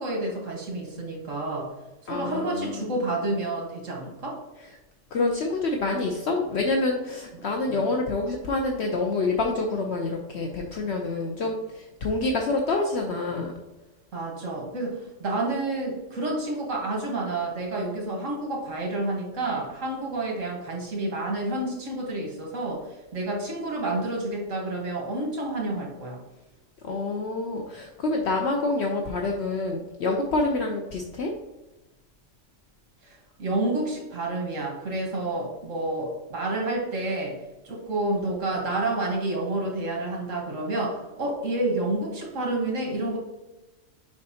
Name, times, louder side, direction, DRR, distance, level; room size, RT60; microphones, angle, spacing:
voice 1, 0.0-1.7 2.1-4.4 7.7-7.8 14.1-22.8 23.1-26.2 33.0-37.4 37.6-43.2, right 2 dB, 75° right, -1 dB, 1.7 m, -29 dB
voice 2, 2.1-2.8 5.1-13.5 26.8-31.3, left 3 dB, 65° left, 2 dB, 0.9 m, -27 dB
6.8 x 5.2 x 2.8 m, 1.0 s
omnidirectional pair, 1.3 m